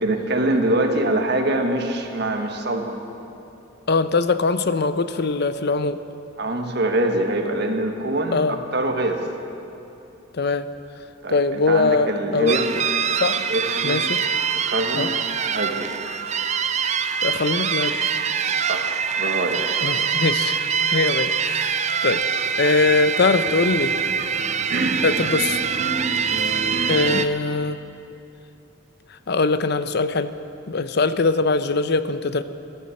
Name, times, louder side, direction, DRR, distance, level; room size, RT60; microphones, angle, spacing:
voice 1, 0.0-3.0 6.4-9.2 11.2-12.7 13.5-14.0 14.7-15.1 15.5-16.0 18.6-19.6 24.7-25.2, right 1 dB, 55° right, 4 dB, 1.5 m, -24 dB
voice 2, 3.9-6.0 8.3-8.6 10.3-10.7 11.3-12.6 13.1-13.4 13.8-14.2 14.9-15.1 17.2-18.1 19.8-20.6 20.9-22.2 22.6-23.9 25.0-25.6 26.9-27.8 29.1-30.3 30.7-32.4, left 3 dB, 55° left, 12 dB, 0.6 m, -22 dB
sound 1, 12.5-27.3, right 6 dB, 35° right, 0.5 m, -24 dB
13.5 x 12.5 x 7.7 m, 2.9 s
head